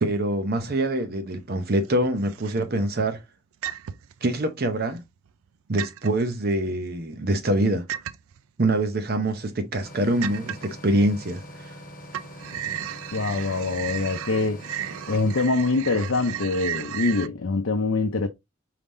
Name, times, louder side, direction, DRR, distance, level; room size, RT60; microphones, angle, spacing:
voice 1, 0.0-3.2 4.2-5.0 5.7-7.9 8.6-11.7, right 1 dB, 45° right, 0.7 m, -25 dB
sound 1, 1.4-1.9 2.3-2.9 3.6-4.2 4.8-5.5 5.8-6.2 7.9-8.4 9.0-9.1 9.5-9.6 10.2-10.8 11.2-11.8 12.1-17.3, right 10 dB, 80° right, 0.4 m, -34 dB
sound 2, 9.8-15.5, equal, 40° left, 1.0 m, -43 dB
voice 2, 13.1-14.6 15.1-18.3, left 3 dB, 70° left, 0.6 m, -24 dB
4.8 x 3.6 x 2.6 m
head